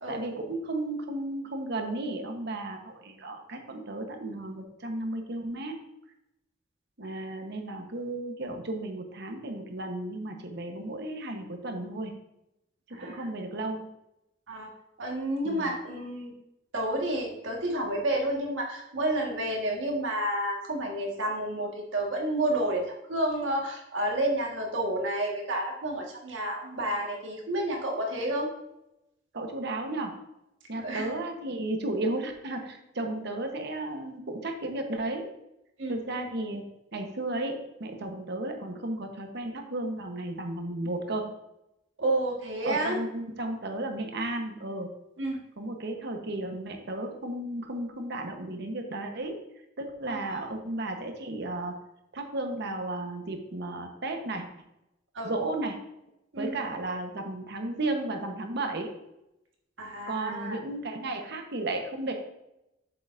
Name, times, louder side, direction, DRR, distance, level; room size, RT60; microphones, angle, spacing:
voice 1, 0.1-5.8 7.0-12.1 12.9-13.9 15.4-15.7 29.3-30.1 30.7-35.3 35.9-36.6 36.9-41.3 42.6-44.9 45.6-49.4 49.8-51.8 52.1-54.4 55.2-55.8 56.4-58.9 60.1-62.1, right 2 dB, 60° right, 4 dB, 1.0 m, -34 dB
voice 2, 12.9-13.3 14.5-14.7 15.0-16.3 16.7-28.5 30.7-31.1 35.8-36.3 42.0-43.0 45.2-45.3 50.1-50.4 55.1-55.3 56.3-56.5 59.8-60.6, right 1 dB, 80° right, 0 dB, 1.6 m, -30 dB
7.6 x 6.9 x 2.6 m, 0.88 s
head